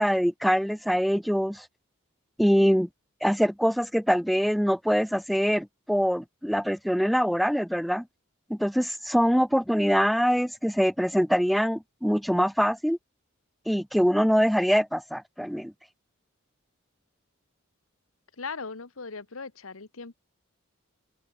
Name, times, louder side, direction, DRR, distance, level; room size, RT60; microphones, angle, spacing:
voice 1, 0.0-1.7 2.4-2.9 3.2-8.0 8.5-13.0 13.7-15.7, equal, ahead, 0.5 m, -24 dB
voice 2, 18.4-20.2, left 4 dB, 85° left, 1.4 m, -38 dB
open air
head